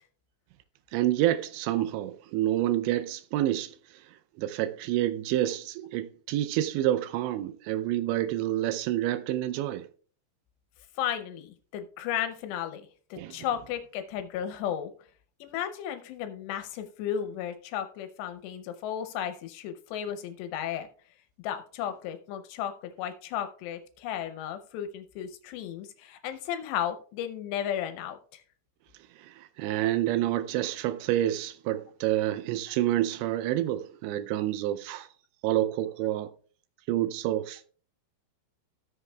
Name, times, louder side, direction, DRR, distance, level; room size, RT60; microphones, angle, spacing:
voice 1, 0.9-3.8 4.4-9.9 13.2-13.4 29.2-35.1 35.4-36.3 36.9-37.7, right 13 dB, 85° right, 2.8 m, -28 dB
voice 2, 11.0-14.9 15.4-20.9 21.4-28.4, left 9 dB, 80° left, 2.7 m, -34 dB
17.5 x 6.6 x 2.3 m
omnidirectional pair, 5.2 m